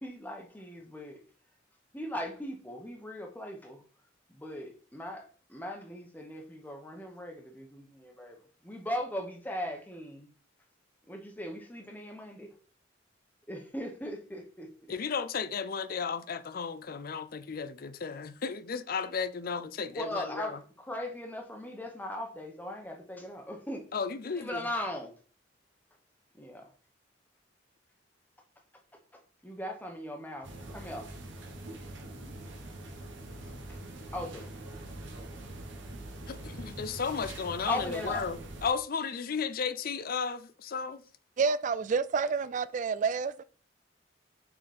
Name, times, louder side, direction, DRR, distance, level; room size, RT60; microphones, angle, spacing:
voice 1, 0.0-1.2 1.9-3.8 4.3-8.4 8.6-10.3 11.1-12.5 13.5-14.7 19.9-23.8 24.4-25.1 26.4-26.7 29.4-31.1 34.1-34.5 37.7-38.2, left 1 dB, 10° left, 1.1 m, -39 dB
voice 2, 14.9-20.6 23.9-24.7 36.3-41.0, left 5 dB, 50° left, 0.5 m, -34 dB
sound 1, 30.4-38.7, right 1 dB, 75° right, 1.3 m, -43 dB
voice 3, 41.4-43.4, right 5 dB, 40° right, 0.3 m, -29 dB
6.2 x 4.2 x 4.3 m
head